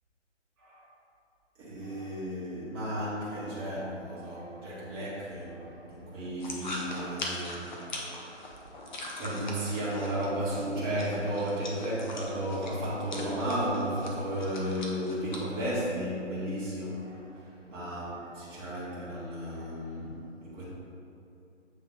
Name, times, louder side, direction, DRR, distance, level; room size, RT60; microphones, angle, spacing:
voice 1, 1.6-8.6 9.2-20.6, equal, 20° right, -8 dB, 1.4 m, -34 dB
sound 1, 6.4-15.4, left 1 dB, 40° left, 0.8 m, -41 dB
7.4 x 3.4 x 3.8 m, 2.7 s
figure-of-eight pair, 145°, 37 cm